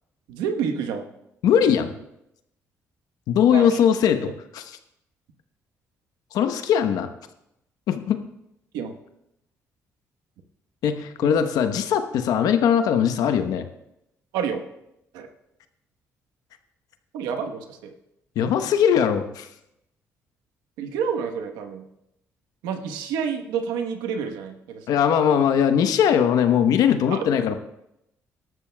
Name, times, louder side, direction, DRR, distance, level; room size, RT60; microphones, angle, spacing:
voice 1, 0.3-1.1 3.5-3.7 8.7-8.9 11.2-11.3 14.3-14.6 15.1-15.3 17.1-17.9 20.8-21.8 22.6-25.0 27.1-27.3, right 7 dB, 90° right, 5 dB, 1.1 m, -29 dB
voice 2, 1.4-1.9 3.3-4.8 6.3-7.1 7.9-8.2 10.8-13.7 18.3-19.5 24.9-27.6, left 8 dB, 75° left, 8 dB, 1.0 m, -20 dB
18.5 x 12.5 x 2.3 m, 0.83 s
supercardioid pair, 65°, 6 cm